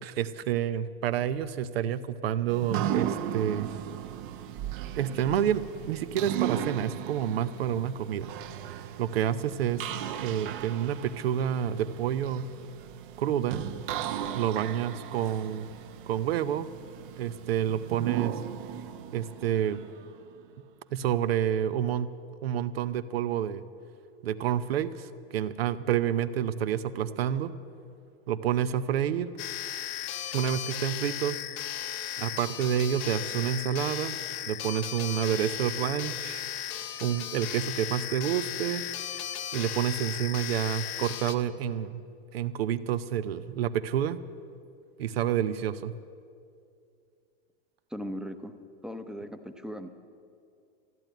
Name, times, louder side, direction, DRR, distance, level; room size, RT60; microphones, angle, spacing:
voice 1, 0.0-3.7 5.0-8.3 9.0-9.9 10.2-12.4 13.2-13.6 14.3-15.7 16.1-16.7 17.2-18.4 19.1-19.8 20.9-22.1 22.4-23.6 24.2-27.5 28.3-29.4 30.3-31.4 32.2-34.2 34.5-36.4 37.0-38.9 39.5-42.0 42.3-44.2 45.0-45.9, right 9 dB, 90° right, 13 dB, 0.8 m, -29 dB
sound 1, 2.5-20.3, right 11 dB, 60° right, 1.0 m, -37 dB
sound 2, 29.4-41.3, left 11 dB, 40° left, 0.8 m, -36 dB
voice 2, 47.9-48.5 48.8-49.9, equal, ahead, 7 dB, 0.7 m, -38 dB
14.0 x 11.0 x 9.2 m, 2.4 s
supercardioid pair, 130°, 29 cm